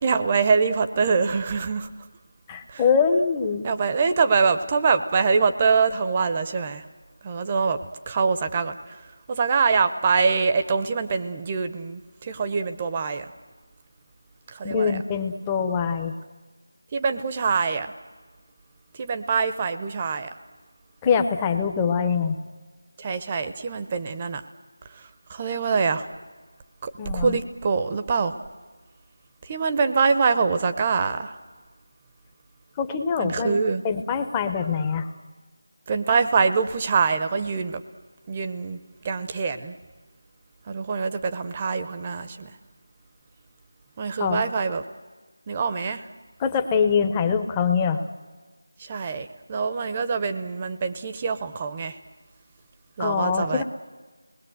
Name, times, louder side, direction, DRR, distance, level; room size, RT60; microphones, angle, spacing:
voice 1, 0.0-1.9 2.7-2.8 3.6-6.8 7.2-7.8 8.1-9.0 9.3-13.2 14.5-15.0 16.9-17.9 19.0-20.3 23.0-24.4 25.3-26.1 26.8-28.4 29.4-31.3 33.2-33.8 35.9-37.8 38.3-38.8 39.0-39.7 40.7-42.5 44.0-44.8 45.5-46.0 48.8-52.0 53.0-53.6, right 5 dB, 20° right, 9 dB, 0.8 m, -24 dB
voice 2, 2.5-3.7 14.6-16.1 21.0-22.4 27.0-27.4 32.8-33.6 33.8-35.1 44.2-44.4 46.4-48.0 53.0-53.6, left 6 dB, 10° left, 5 dB, 0.8 m, -23 dB
29.0 x 20.5 x 7.9 m, 1.4 s
figure-of-eight pair, 175°, 0 cm